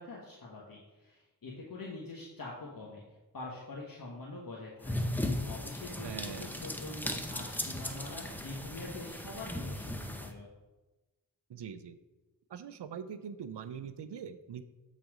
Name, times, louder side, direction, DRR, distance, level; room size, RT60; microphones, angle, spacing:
voice 1, 0.0-3.0 3.3-10.5, left 2 dB, 50° left, -4 dB, 1.4 m, -45 dB
sound 1, 4.8-10.3, left 1 dB, 5° left, 0.7 m, -37 dB
voice 2, 6.0-6.5 11.5-12.0 12.5-14.6, right 7 dB, 75° right, 12 dB, 0.6 m, -42 dB
7.7 x 4.1 x 4.8 m, 1.1 s
cardioid pair, 60°, 42 cm